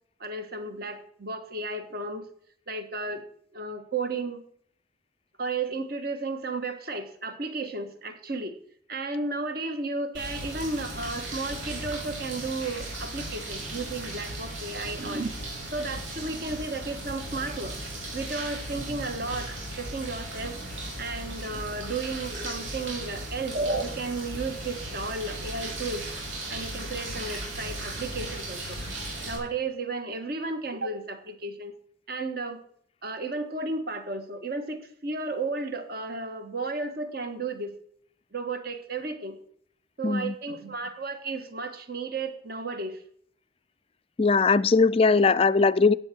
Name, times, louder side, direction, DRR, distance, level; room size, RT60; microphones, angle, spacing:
voice 1, 0.2-2.3 2.7-3.3 3.5-4.4 5.4-8.6 8.9-15.3 15.7-17.8 18.1-20.6 21.0-26.1 26.5-28.8 29.2-31.7 32.1-32.6 33.0-37.8 38.3-39.4 40.0-43.0 45.1-45.2, right 3 dB, 50° right, 7 dB, 1.6 m, -33 dB
sound 1, 10.1-29.4, right 1 dB, 80° right, 5.9 m, -36 dB
voice 2, 40.0-40.3 44.2-45.9, left 4 dB, 30° left, 15 dB, 0.4 m, -20 dB
15.0 x 8.9 x 4.6 m, 0.63 s
head